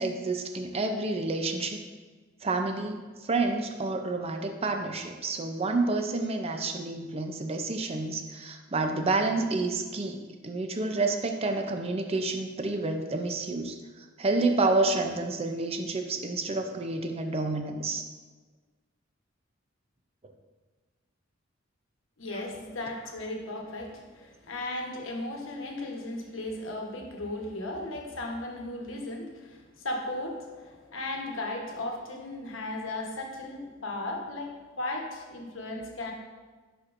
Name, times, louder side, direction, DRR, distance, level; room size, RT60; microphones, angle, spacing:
voice 1, 0.0-1.8 2.4-3.0 3.2-13.8 14.2-18.0, right 3 dB, 30° right, 5 dB, 0.5 m, -29 dB
voice 2, 22.2-36.1, left 2 dB, 75° left, 1 dB, 1.1 m, -36 dB
11.0 x 4.3 x 2.6 m, 1.4 s
head